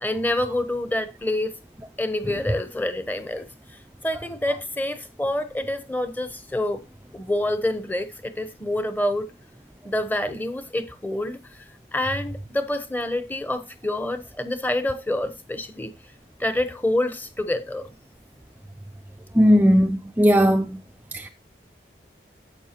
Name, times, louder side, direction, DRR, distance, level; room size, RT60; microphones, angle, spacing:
voice 1, 0.0-1.6 2.0-3.5 4.0-6.8 7.1-9.3 9.8-15.9 16.4-17.9, left 1 dB, 10° left, 0.9 m, -27 dB
voice 2, 19.4-20.8 21.1-21.3, equal, 10° right, 0.4 m, -17 dB
11.0 x 7.7 x 2.9 m
head